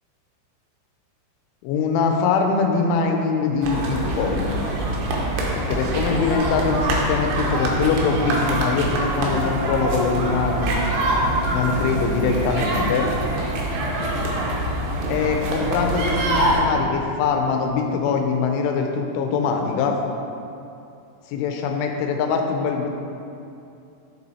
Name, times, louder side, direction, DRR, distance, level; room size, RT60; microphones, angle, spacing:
voice 1, 1.6-4.6 5.5-10.8 11.5-13.1 15.1-20.0 21.3-22.9, left 5 dB, 90° left, 4 dB, 3.1 m, -23 dB
sound 1, 3.6-16.6, right 1 dB, 75° right, 2.6 m, -24 dB
6.8 x 6.8 x 4.3 m, 2.7 s
omnidirectional pair, 5.4 m